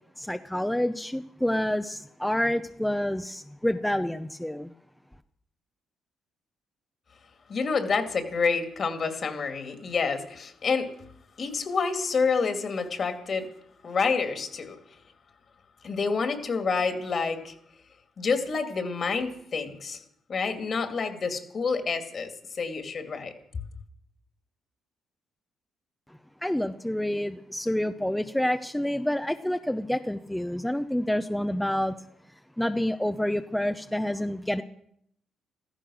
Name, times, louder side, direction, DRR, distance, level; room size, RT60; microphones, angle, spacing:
voice 1, 0.2-4.7 26.4-32.0 32.6-34.6, left 1 dB, 5° left, 8 dB, 0.6 m, -28 dB
voice 2, 7.5-10.9 11.4-13.5 13.8-14.8 15.8-17.5 18.2-20.0 20.3-23.3, left 5 dB, 45° left, 7 dB, 2.4 m, -28 dB
15.5 x 14.0 x 6.3 m, 0.71 s
cardioid pair, 90°, 0 cm